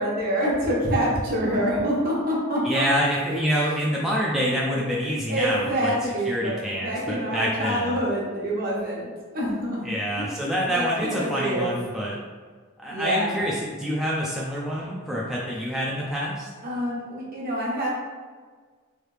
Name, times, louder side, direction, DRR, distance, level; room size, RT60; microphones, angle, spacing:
voice 1, 0.0-2.8 5.3-9.1 9.3-9.9 10.2-10.3 10.7-11.7 12.9-13.4 16.6-17.9, equal, 45° right, -5 dB, 1.0 m, -26 dB
voice 2, 2.6-5.9 6.3-7.8 9.8-12.2 12.8-16.5, equal, ahead, -6 dB, 0.3 m, -26 dB
3.2 x 2.7 x 3.2 m, 1.5 s
head